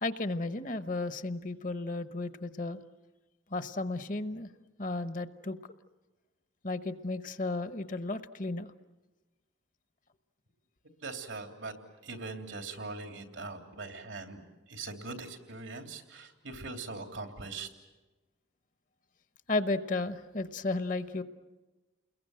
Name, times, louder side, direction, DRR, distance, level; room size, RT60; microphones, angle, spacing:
voice 1, 0.0-2.8 3.5-4.5 4.8-5.6 6.6-8.7 19.5-21.2, left 2 dB, 40° left, 11 dB, 1.0 m, -33 dB
voice 2, 11.0-11.8 12.0-17.7, right 3 dB, 90° right, 5 dB, 3.3 m, -41 dB
29.5 x 22.0 x 7.8 m, 1.2 s
head